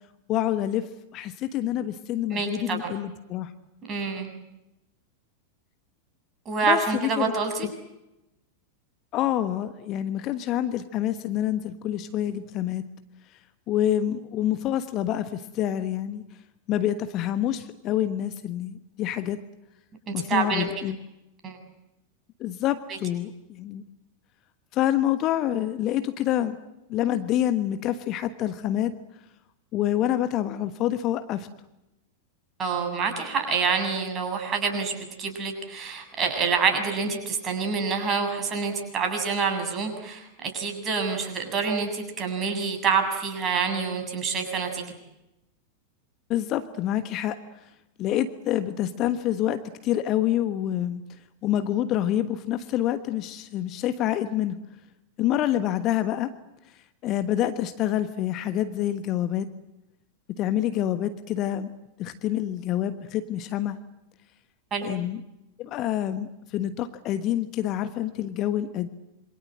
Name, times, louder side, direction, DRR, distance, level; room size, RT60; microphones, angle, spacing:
voice 1, 0.3-3.5 6.7-7.3 7.6-7.7 9.1-12.8 13.7-16.2 16.7-19.4 20.1-21.0 22.4-23.8 24.7-26.6 26.9-29.0 29.7-31.5 46.3-47.4 48.0-51.0 51.4-54.6 55.2-56.3 57.0-59.5 60.4-61.7 62.0-63.8 64.8-65.2 65.6-68.9, left 12 dB, 35° left, 11 dB, 1.3 m, -27 dB
voice 2, 2.3-2.9 3.9-4.3 6.5-7.7 20.1-20.7 21.4-21.6 22.9-23.0 32.6-44.9 64.7-64.9, right 5 dB, 25° right, 4 dB, 7.3 m, -27 dB
27.5 x 24.5 x 7.8 m, 0.92 s
figure-of-eight pair, 90°, 0 cm